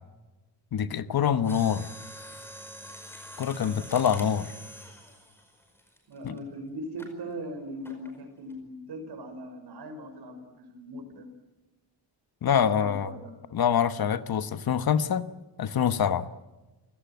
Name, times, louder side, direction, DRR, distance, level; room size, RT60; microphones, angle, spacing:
voice 1, 0.7-1.9 3.4-4.5 6.2-6.4 12.4-13.1 13.5-15.2 15.6-16.3, left 8 dB, 55° left, 12 dB, 1.3 m, -25 dB
Mechanisms, 1.4-6.4 7.0-7.2 7.8-8.2 8.5-8.6, equal, 5° left, 5.1 m, -45 dB
voice 2, 3.6-4.3 6.1-11.3 12.5-13.3, right 1 dB, 65° right, 6 dB, 6.3 m, -40 dB
29.5 x 17.5 x 9.3 m, 1.1 s
wide cardioid pair, 175°, 44 cm